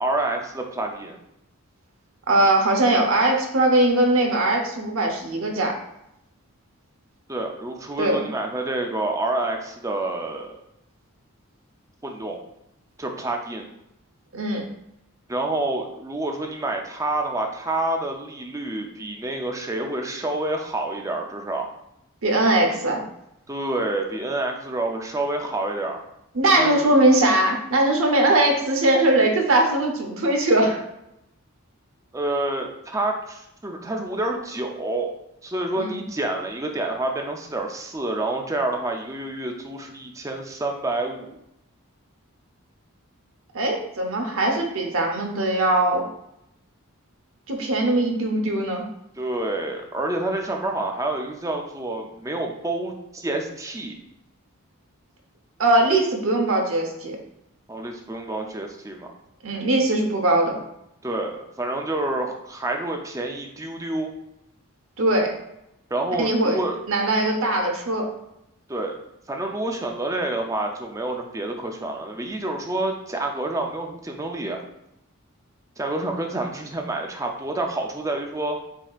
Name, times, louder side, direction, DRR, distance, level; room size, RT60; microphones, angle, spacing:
voice 1, 0.0-1.2 7.3-10.6 12.0-12.4 13.0-13.7 15.3-21.7 23.5-26.0 26.6-27.0 32.1-35.1 35.4-41.4 49.2-53.9 57.7-59.1 61.0-64.1 65.9-66.8 68.7-68.9 69.3-74.6 75.8-78.6, right 2 dB, 15° right, 2 dB, 0.5 m, -28 dB
voice 2, 2.3-5.8 8.0-8.3 14.3-14.6 22.2-23.0 26.3-30.8 35.8-36.0 43.5-46.1 47.5-48.8 55.6-57.2 59.4-60.6 65.0-65.3 66.2-66.6 66.9-68.1, right 1 dB, 65° right, 2 dB, 0.9 m, -20 dB
7.4 x 2.8 x 2.4 m, 0.82 s
head